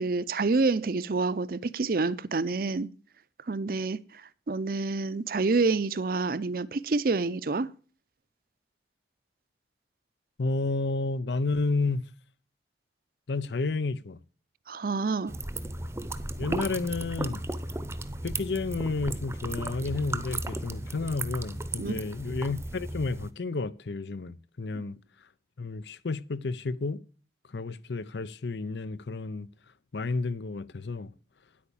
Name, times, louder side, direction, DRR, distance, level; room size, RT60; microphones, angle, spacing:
voice 1, 0.0-2.9 3.5-4.2 4.5-7.7 14.7-15.3 21.8-22.0, right 3 dB, 55° right, 0.5 m, -28 dB
voice 2, 10.4-12.1 13.3-14.2 16.4-17.4 18.2-25.0 25.6-27.0 27.5-29.5 29.9-31.1, left 3 dB, 85° left, 0.6 m, -31 dB
sound 1, 15.3-23.3, right 2 dB, 15° right, 0.7 m, -35 dB
10.0 x 8.6 x 7.0 m
head